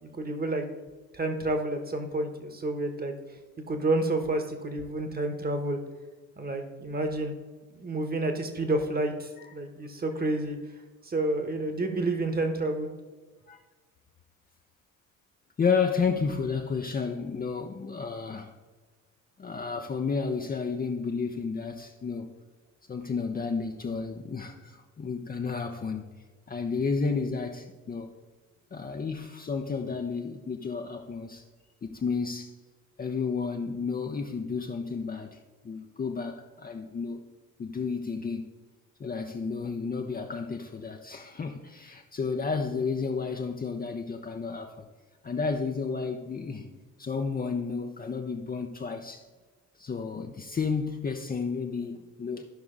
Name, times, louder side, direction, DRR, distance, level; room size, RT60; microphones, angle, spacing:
voice 1, 0.0-0.6 1.1-3.1 3.7-5.8 6.4-7.3 7.7-10.6 11.0-12.9, right 2 dB, 25° right, 1.4 m, -29 dB
voice 2, 15.6-18.5 19.4-22.3 22.9-26.1 26.5-28.1 28.7-31.4 31.8-32.5 33.0-35.4 35.6-37.2 37.6-38.5 39.0-44.9 45.2-46.7 47.0-49.2 49.8-52.4, left 5 dB, 20° left, 0.7 m, -31 dB
13.0 x 5.8 x 3.9 m
figure-of-eight pair, 50°, 40 cm